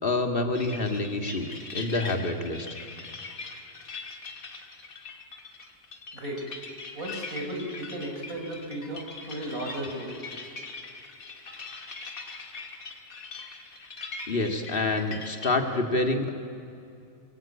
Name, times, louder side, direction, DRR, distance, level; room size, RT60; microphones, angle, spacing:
voice 1, 0.0-2.7 14.3-16.3, left 2 dB, 40° left, 5 dB, 2.3 m, -27 dB
sound 1, 0.5-15.5, left 3 dB, 85° left, 2.5 m, -42 dB
voice 2, 6.1-6.6 6.9-10.1, right 1 dB, 80° right, 1 dB, 5.4 m, -35 dB
24.5 x 23.5 x 8.8 m, 2.5 s
omnidirectional pair, 1.4 m